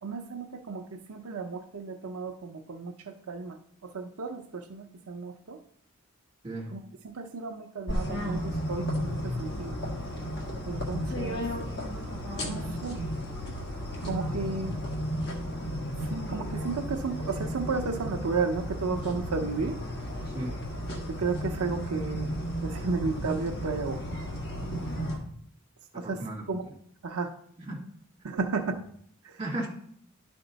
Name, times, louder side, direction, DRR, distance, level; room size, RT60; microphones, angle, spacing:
voice 1, 0.0-5.6 6.7-9.8 10.7-11.5 12.4-13.0 14.0-14.8 16.0-19.8 21.1-22.3 22.6-24.0 25.9-26.6 27.0-27.3 28.2-28.8 29.2-29.4, right 4 dB, 80° right, 4 dB, 0.6 m, -33 dB
sound 1, 7.9-25.2, equal, 50° left, 1.5 m, -33 dB
voice 2, 20.3-20.6 25.9-26.5 27.6-27.9 29.4-29.7, right 1 dB, 25° right, -3 dB, 2.2 m, -35 dB
11.0 x 4.4 x 4.0 m, 0.65 s
head